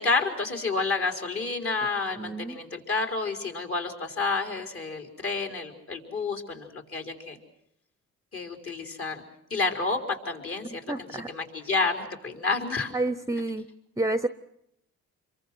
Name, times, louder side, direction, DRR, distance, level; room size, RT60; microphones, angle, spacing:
voice 1, 0.0-7.4 8.3-9.2 9.5-12.9, left 3 dB, 45° left, 5 dB, 4.5 m, -30 dB
voice 2, 2.1-2.6 10.9-11.3 12.9-13.7 14.0-14.3, right 2 dB, 10° right, 13 dB, 0.9 m, -29 dB
27.5 x 23.5 x 6.3 m, 0.77 s
cardioid pair, 90°, 30 cm